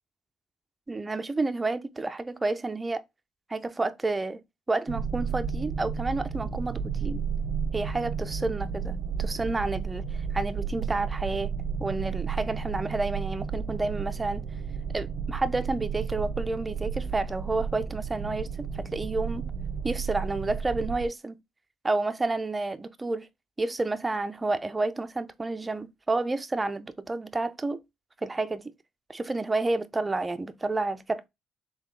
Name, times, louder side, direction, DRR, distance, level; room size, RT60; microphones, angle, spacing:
voice 1, 0.9-3.0 3.5-4.4 4.7-7.2 7.7-11.5 11.8-14.5 14.9-19.5 19.8-21.4 21.8-23.3 23.6-27.8 28.2-28.7 29.1-31.3, right 3 dB, 20° right, 0.5 m, -30 dB
sound 1, 4.9-21.1, right 6 dB, 75° right, 0.5 m, -32 dB
3.9 x 3.2 x 3.1 m
cardioid pair, 85°, 0 cm